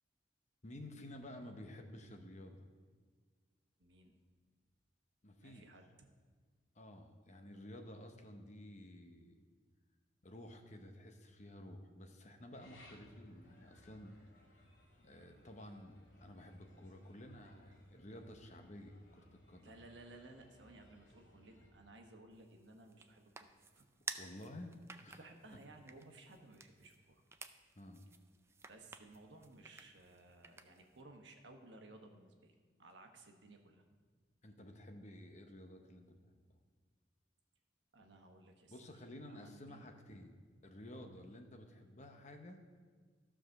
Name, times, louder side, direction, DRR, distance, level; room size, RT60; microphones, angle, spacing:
voice 1, 0.6-2.7 5.2-5.7 6.7-9.4 10.2-14.2 15.0-19.8 24.0-25.2 27.7-28.0 34.4-36.6 38.7-40.3 40.6-42.6, left 1 dB, 40° left, 5 dB, 0.9 m, -53 dB
voice 2, 3.8-4.1 5.4-6.1 19.6-23.5 23.7-24.3 25.2-27.2 28.7-33.8 37.9-38.7 39.2-39.8 41.2-41.3, right 2 dB, 70° right, 4 dB, 1.2 m, -58 dB
sound 1, 12.5-21.7, left 1 dB, 75° left, 2.2 m, -64 dB
sound 2, 22.3-31.0, right 4 dB, 15° right, 0.3 m, -53 dB
13.5 x 5.0 x 6.4 m, 1.5 s
head